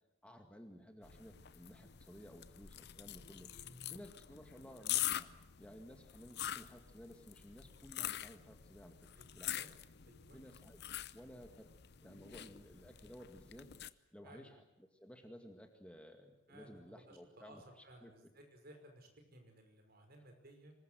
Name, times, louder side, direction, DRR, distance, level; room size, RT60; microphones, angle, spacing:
voice 1, 0.2-3.5 3.9-5.3 5.6-9.1 9.3-9.6 10.3-10.8 11.1-11.7 12.0-18.1, equal, 5° left, 4 dB, 1.9 m, -56 dB
sound 1, 1.0-13.9, left 12 dB, 55° left, 0.8 m, -45 dB
voice 2, 3.6-4.0 9.1-9.7 10.1-10.4 14.2-14.5 16.5-20.7, right 1 dB, 50° right, 4 dB, 5.7 m, -59 dB
25.0 x 21.0 x 7.9 m, 0.91 s
head